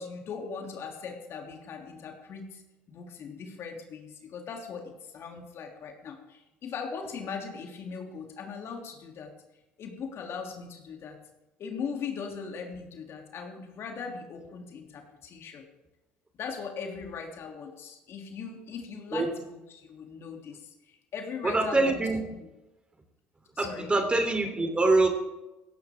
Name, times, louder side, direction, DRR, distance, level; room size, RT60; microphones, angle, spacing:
voice 1, 0.0-2.6 2.9-9.3 9.8-11.2 11.6-15.7 16.4-22.1 23.5-24.0, left 5 dB, 50° left, 2 dB, 3.1 m, -39 dB
voice 2, 21.4-22.2 23.6-25.1, right 2 dB, 20° right, 5 dB, 3.4 m, -24 dB
17.0 x 15.5 x 3.7 m, 1.0 s
hypercardioid pair, 65°, 6 cm